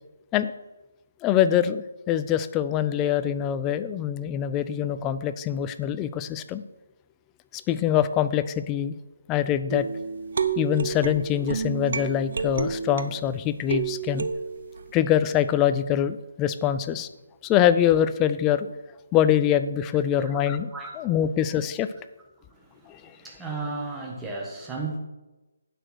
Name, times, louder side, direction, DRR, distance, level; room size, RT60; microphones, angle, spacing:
voice 1, 1.2-6.6 7.5-9.0 9.3-9.9 10.6-14.3 14.9-17.1 17.4-18.7 19.1-21.9, left 10 dB, 15° left, 12 dB, 0.4 m, -24 dB
sound 1, 9.7-13.3 13.7-14.9, right 6 dB, 60° right, 0.7 m, -30 dB
voice 2, 22.8-25.0, right 3 dB, 5° right, -2 dB, 1.2 m, -34 dB
9.2 x 6.1 x 6.3 m, 1.1 s
hypercardioid pair, 165°, 0 cm